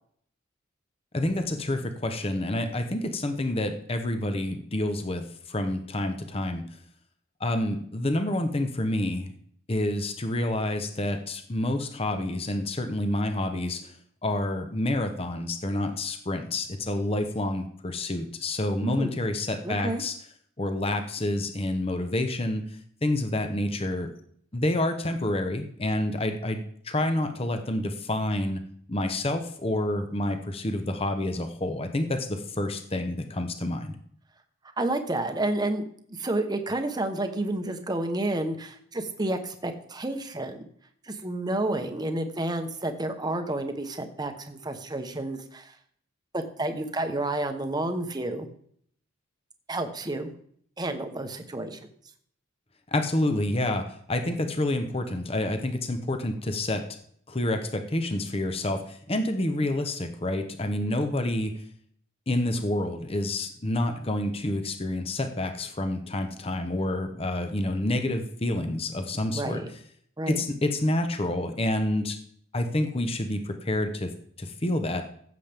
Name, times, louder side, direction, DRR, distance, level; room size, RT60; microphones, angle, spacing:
voice 1, 1.1-5.2 5.5-6.6 7.4-9.3 9.7-13.9 14.2-20.1 20.6-22.7 23.0-24.1 24.5-28.6 28.9-33.9 52.9-56.8 57.3-61.5 62.3-69.6 70.3-72.2 72.5-74.1 74.4-75.0, left 1 dB, 30° left, 7 dB, 0.9 m, -28 dB
voice 2, 18.8-19.1 19.6-20.0 34.8-40.7 41.0-45.7 46.3-48.5 49.7-50.3 50.8-51.8 59.6-59.7 69.3-69.7 70.2-70.4, right 2 dB, 20° right, 6 dB, 0.9 m, -30 dB
15.0 x 7.4 x 3.5 m, 0.63 s
head